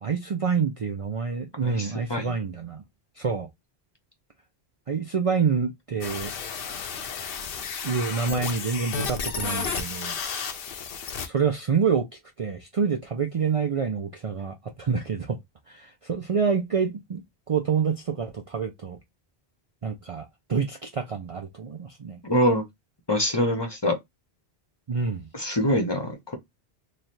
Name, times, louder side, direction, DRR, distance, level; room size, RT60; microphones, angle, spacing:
voice 1, 0.0-2.8 3.2-3.5 4.9-6.3 7.8-10.1 11.2-12.1 12.4-15.4 15.7-19.0 19.8-22.2 24.9-25.3, right 6 dB, 45° right, 0.5 m, -27 dB
voice 2, 1.6-2.3 22.2-22.6 23.1-24.0 25.3-26.3, equal, 25° left, 0.8 m, -24 dB
sound 1, 6.0-11.3, left 6 dB, 65° left, 0.8 m, -32 dB
3.2 x 2.3 x 4.1 m
omnidirectional pair, 1.1 m